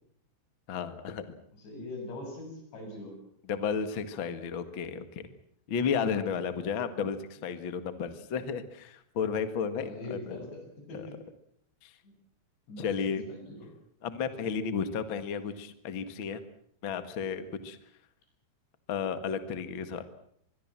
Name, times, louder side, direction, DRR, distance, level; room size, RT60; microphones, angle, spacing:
voice 1, 0.7-1.3 3.5-5.2 5.7-10.4 10.9-11.1 11.8-11.9 12.8-13.2 14.0-16.4 16.8-17.8 18.9-20.0, left 6 dB, 55° left, 10 dB, 1.3 m, -33 dB
voice 2, 1.6-3.2 9.8-11.2 12.7-13.0 13.3-13.7, left 2 dB, 75° left, 3 dB, 9.6 m, -42 dB
25.5 x 22.0 x 7.5 m, 0.68 s
omnidirectional pair, 5.1 m